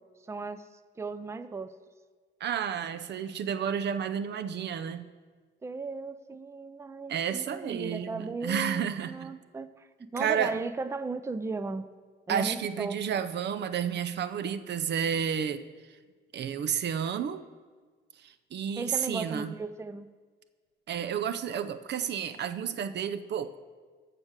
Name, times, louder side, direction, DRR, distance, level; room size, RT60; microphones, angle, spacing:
voice 1, 0.3-0.7 1.0-1.7 5.6-11.9 12.3-13.0 18.8-20.1, right 3 dB, 15° right, 13 dB, 0.5 m, -36 dB
voice 2, 2.4-5.1 7.1-9.3 10.2-10.6 12.3-15.6 16.3-17.4 18.2-19.5 20.9-23.6, right 8 dB, 60° right, 13 dB, 0.6 m, -31 dB
14.5 x 4.9 x 6.6 m, 1.5 s
cardioid pair, 90°, 20 cm